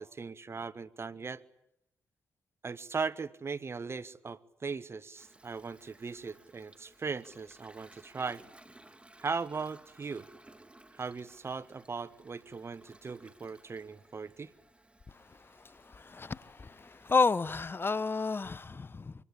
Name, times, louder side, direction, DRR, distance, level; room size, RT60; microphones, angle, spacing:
voice 1, 0.0-1.4 2.6-8.4 9.2-10.3 10.9-14.5, right 5 dB, 40° right, 1.2 m, -38 dB
Toilet flush, 5.1-18.6, right 1 dB, 15° right, 2.9 m, -59 dB
voice 2, 15.3-19.1, left 4 dB, 35° left, 1.0 m, -31 dB
25.5 x 25.0 x 8.7 m
supercardioid pair, 50°, 6 cm